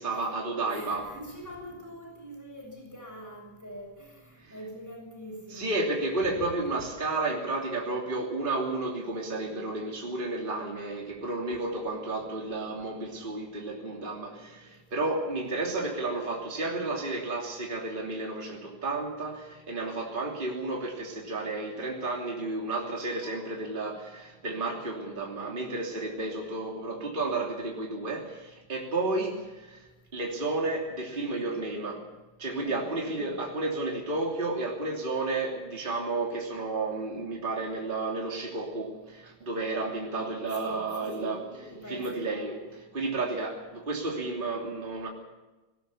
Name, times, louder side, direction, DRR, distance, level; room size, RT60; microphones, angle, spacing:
voice 1, 0.0-1.1 4.4-4.5 5.5-32.0 32.4-45.1, right 2 dB, 20° right, -1 dB, 3.1 m, -32 dB
voice 2, 0.7-4.2 4.5-5.8 6.8-6.9 32.6-32.8 40.5-41.3 41.8-42.2, equal, 5° left, 1 dB, 7.3 m, -43 dB
20.0 x 19.0 x 7.2 m, 1.1 s
omnidirectional pair, 2.4 m